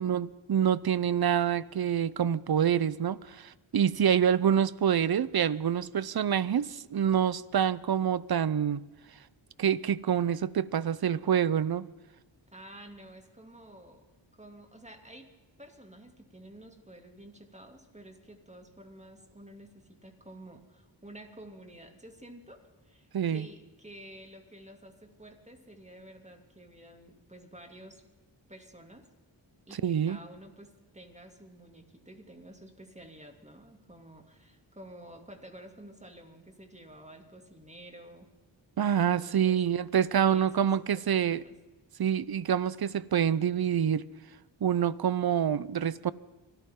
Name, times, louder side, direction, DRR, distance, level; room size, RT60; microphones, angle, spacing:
voice 1, 0.0-8.8 9.6-11.9 23.1-23.5 29.8-30.2 38.8-41.4 42.0-44.1 44.6-46.1, right 8 dB, 55° right, 0.7 m, -26 dB
voice 2, 12.5-14.0 14.3-15.3 15.6-28.0 28.5-29.1 29.7-38.3 39.0-39.6 40.2-41.5, right 1 dB, 15° right, 2.7 m, -51 dB
24.5 x 14.0 x 3.8 m
cardioid pair, 60°, 46 cm